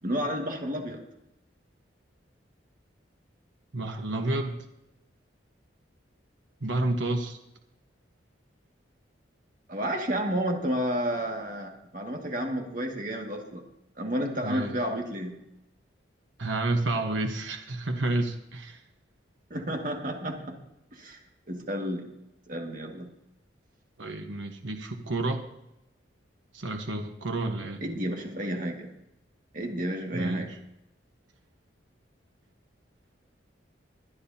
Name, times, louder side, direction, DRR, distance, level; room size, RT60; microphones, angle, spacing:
voice 1, 0.0-1.0 9.7-13.6 14.0-15.4 19.5-20.6 20.9-21.2 21.5-22.1 22.5-23.1 27.8-28.9 29.5-30.6, equal, 45° right, 1 dB, 2.0 m, -31 dB
voice 2, 3.7-4.6 6.6-7.4 14.4-14.8 16.4-18.8 24.0-25.4 26.5-27.8 30.1-30.5, right 2 dB, 80° right, 4 dB, 1.2 m, -30 dB
22.5 x 10.0 x 2.8 m, 0.85 s
head